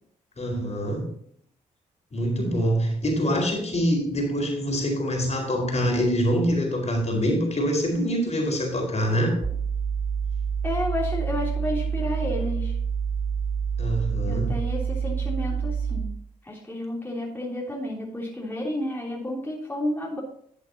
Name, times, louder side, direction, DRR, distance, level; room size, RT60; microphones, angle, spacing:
voice 1, 0.4-1.1 2.1-9.4 13.8-14.6, equal, 40° left, 1 dB, 4.3 m, -25 dB
sound 1, 9.4-16.2, right 6 dB, 60° right, 4.3 m, -27 dB
voice 2, 10.6-12.8 14.3-16.1 16.4-20.2, left 1 dB, 10° left, -3 dB, 3.2 m, -31 dB
11.5 x 7.7 x 2.8 m, 0.64 s
hypercardioid pair, 45°, 17 cm